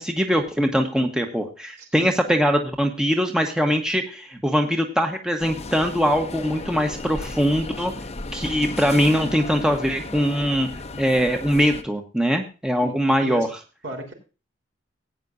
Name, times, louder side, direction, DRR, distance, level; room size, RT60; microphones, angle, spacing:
voice 1, 0.0-7.9 8.3-10.7 11.0-13.5, equal, 5° right, 3 dB, 1.2 m, -22 dB
voice 2, 1.8-2.1 12.8-12.9 13.2-13.5 13.8-14.1, right 1 dB, 65° right, 2 dB, 4.1 m, -34 dB
sound 1, 5.4-11.8, left 2 dB, 35° left, 0.9 m, -35 dB
17.0 x 9.3 x 2.7 m, 0.32 s
head